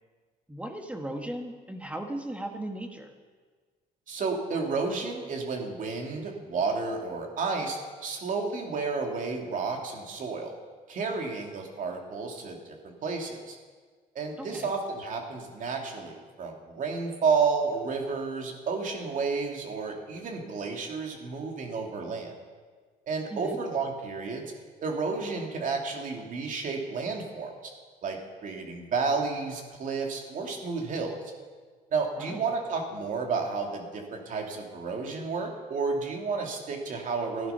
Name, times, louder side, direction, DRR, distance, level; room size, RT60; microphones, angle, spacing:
voice 1, 0.5-3.1 14.4-14.7 23.3-23.6 32.2-32.4, right 1 dB, 5° right, 4 dB, 1.7 m, -37 dB
voice 2, 4.1-10.5 10.9-13.6 14.1-22.3 23.1-24.5 24.8-27.7 28.0-31.2 31.9-37.5, right 4 dB, 50° right, 2 dB, 2.6 m, -31 dB
16.0 x 11.0 x 5.7 m, 1.5 s
cardioid pair, 110°, 17 cm